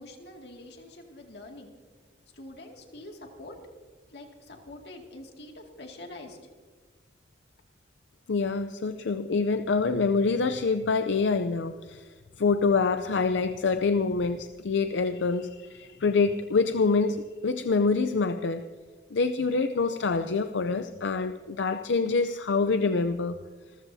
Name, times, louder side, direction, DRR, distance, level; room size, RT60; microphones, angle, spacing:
voice 1, 0.0-1.7 2.3-3.6 4.1-6.4, left 2 dB, 65° left, 2 dB, 2.2 m, -45 dB
voice 2, 8.3-12.0 12.4-18.6 19.1-23.4, left 4 dB, 90° left, 9 dB, 0.5 m, -26 dB
26.5 x 14.5 x 2.7 m, 1.4 s
head